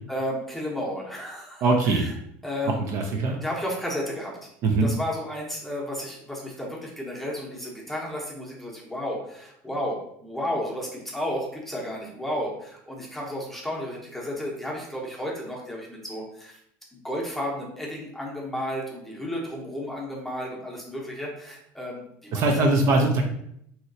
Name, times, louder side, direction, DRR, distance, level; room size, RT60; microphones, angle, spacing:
voice 1, 0.1-2.1 2.4-2.8 3.2-4.4 4.8-16.6 16.9-22.9, equal, 5° left, -3 dB, 0.8 m, -33 dB
voice 2, 1.6-2.1 2.9-3.4 4.6-4.9 22.3-23.2, right 2 dB, 50° right, 3 dB, 0.5 m, -21 dB
3.1 x 2.8 x 2.7 m, 0.72 s
cardioid pair, 135°, 7 cm